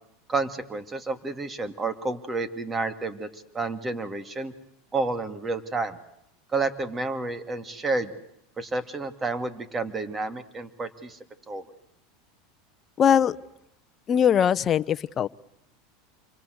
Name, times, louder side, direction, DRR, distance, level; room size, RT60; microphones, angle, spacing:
voice 1, 0.3-4.5 4.9-6.0 6.5-8.1 8.6-11.2 11.5-11.6, right 3 dB, 20° right, 11 dB, 2.7 m, -30 dB
voice 2, 13.0-13.4 14.1-15.3, left 8 dB, 35° left, 12 dB, 1.0 m, -21 dB
28.0 x 24.5 x 8.1 m, 0.77 s
hypercardioid pair, 105°, 0 cm